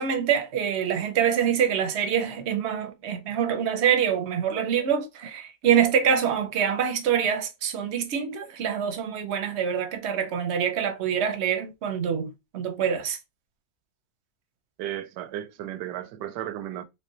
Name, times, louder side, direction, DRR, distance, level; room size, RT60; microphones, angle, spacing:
voice 1, 0.0-13.2, right 8 dB, 55° right, 0.8 m, -25 dB
voice 2, 14.8-16.8, right 12 dB, 85° right, 1.2 m, -34 dB
3.6 x 3.2 x 2.7 m
omnidirectional pair, 1.8 m